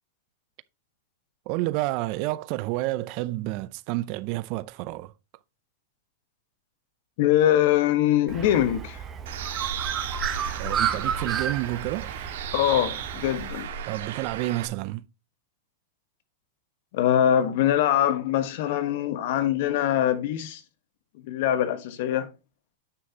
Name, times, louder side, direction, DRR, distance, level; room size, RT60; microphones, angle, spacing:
voice 1, 1.5-5.1 10.6-12.1 13.9-15.1, right 18 dB, 45° right, 0.5 m, -29 dB
voice 2, 7.2-9.0 12.5-13.7 16.9-20.6 21.2-22.3, left 11 dB, 55° left, 1.3 m, -23 dB
Bird, 8.3-13.5, right 8 dB, 20° right, 1.0 m, -32 dB
Bird 2, 9.3-14.7, right 7 dB, 70° right, 1.7 m, -34 dB
9.6 x 5.6 x 2.8 m
supercardioid pair, 145°, 0 cm